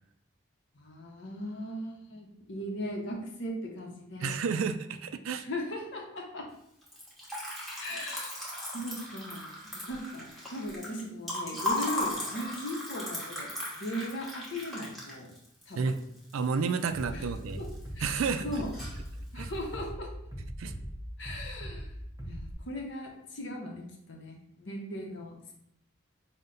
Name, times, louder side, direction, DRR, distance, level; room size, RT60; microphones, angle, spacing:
voice 1, 0.7-4.3 5.4-6.5 7.8-15.3 15.7-15.9 17.1-17.2 17.6-17.7 17.9-18.7 19.3-20.1 21.2-21.9 22.3-25.5, equal, 65° left, 0 dB, 0.8 m, -38 dB
voice 2, 4.2-5.5 15.8-16.0 16.3-17.6 18.0-18.5 19.4-19.5 20.6-20.7, right 5 dB, 85° right, 8 dB, 0.4 m, -30 dB
Liquid, 6.8-17.0 17.3-18.0 18.3-19.1, left 1 dB, ahead, 1.0 m, -37 dB
Bass drum, 16.9-22.5, equal, 15° right, 0.6 m, -40 dB
5.5 x 2.2 x 3.8 m, 0.77 s
head